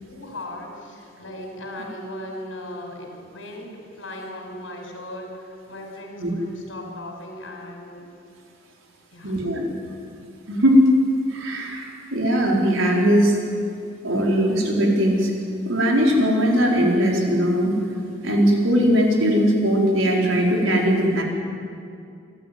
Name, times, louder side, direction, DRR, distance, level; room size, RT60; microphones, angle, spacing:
voice 1, 0.0-8.0 9.1-9.4, left 1 dB, 80° left, 0 dB, 5.5 m, -37 dB
voice 2, 9.2-9.7 10.5-10.9 11.3-13.4 14.0-15.3 15.7-17.8 18.2-21.2, equal, 85° right, -1 dB, 4.4 m, -19 dB
26.5 x 13.0 x 9.5 m, 2.5 s
head